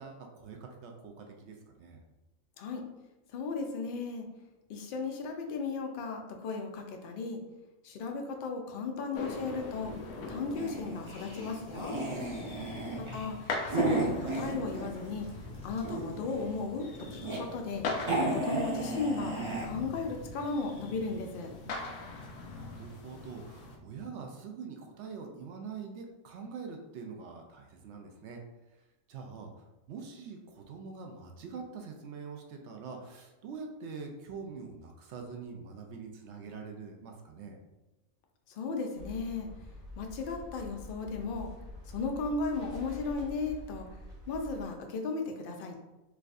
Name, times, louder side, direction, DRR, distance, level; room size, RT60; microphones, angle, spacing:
voice 1, 0.0-2.0 12.7-13.3 22.5-28.4 29.1-29.5 29.9-37.6, right 5 dB, 65° right, 3 dB, 0.7 m, -44 dB
voice 2, 3.3-4.3 4.7-7.4 7.8-10.0 10.3-12.0 13.0-13.4 13.7-15.3 15.6-17.8 18.3-19.3 19.6-21.5 38.6-39.5 40.0-41.5 41.9-43.9 44.3-45.8, left 4 dB, 70° left, 3 dB, 0.5 m, -35 dB
sound 1, 9.1-23.8, left 3 dB, 90° left, 1.1 m, -42 dB
sound 2, 10.5-15.1 15.5-16.3 16.9-17.4 17.7-17.8 18.0-19.7, right 2 dB, 30° right, 0.5 m, -33 dB
sound 3, 38.9-44.7, left 1 dB, 90° right, 1.5 m, -46 dB
4.6 x 2.3 x 2.5 m, 1.0 s
omnidirectional pair, 1.4 m